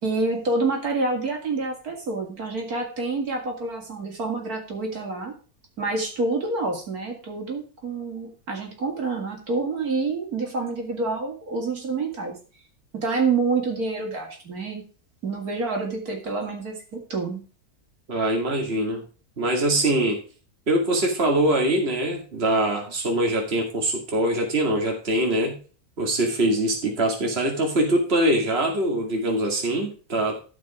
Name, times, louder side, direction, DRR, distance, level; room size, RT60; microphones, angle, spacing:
voice 1, 0.0-5.3 5.8-12.4 12.9-14.8 15.2-17.4, right 3 dB, 75° right, 1 dB, 3.1 m, -27 dB
voice 2, 18.1-19.0 19.4-20.2 20.7-25.6 26.0-30.4, right 1 dB, 40° right, 1 dB, 2.5 m, -23 dB
14.0 x 5.4 x 4.9 m, 0.36 s
omnidirectional pair, 1.6 m